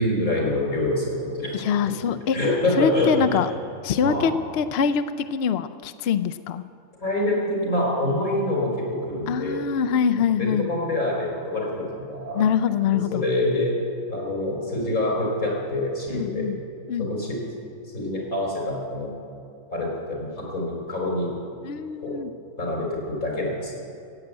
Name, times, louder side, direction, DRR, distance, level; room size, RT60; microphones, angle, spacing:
voice 1, 0.0-1.5 2.0-3.4 4.0-4.3 7.0-9.6 10.4-12.4 12.9-13.7 14.1-16.5 17.0-17.4 17.9-19.1 19.7-21.3 22.0-22.2 22.6-23.7, left 1 dB, 80° left, -2 dB, 4.6 m, -26 dB
voice 2, 1.5-2.4 2.8-3.5 3.8-6.6 9.3-10.7 12.3-13.2 16.1-16.6 16.9-17.2 21.6-22.3, left 7 dB, 60° left, 12 dB, 0.7 m, -24 dB
15.0 x 8.7 x 9.0 m, 2.5 s
omnidirectional pair, 1.5 m